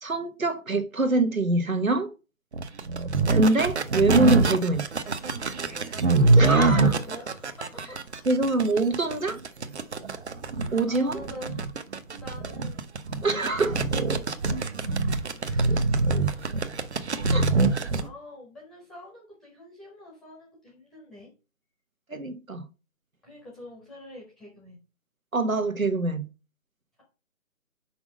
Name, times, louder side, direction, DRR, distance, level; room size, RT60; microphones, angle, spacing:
voice 1, 0.0-2.1 3.3-4.9 6.4-6.9 8.3-9.4 10.7-11.2 13.2-13.9 17.3-17.5 22.1-22.6 25.3-26.3, right 2 dB, 85° right, 1.4 m, -24 dB
sound 1, 2.5-18.1, right 3 dB, 55° right, 1.0 m, -24 dB
voice 2, 5.7-8.3 10.9-11.6 12.1-12.9 15.4-16.0 17.4-21.3 23.2-24.8, left 1 dB, ahead, 0.8 m, -45 dB
6.0 x 5.4 x 5.2 m
figure-of-eight pair, 140°, 40 cm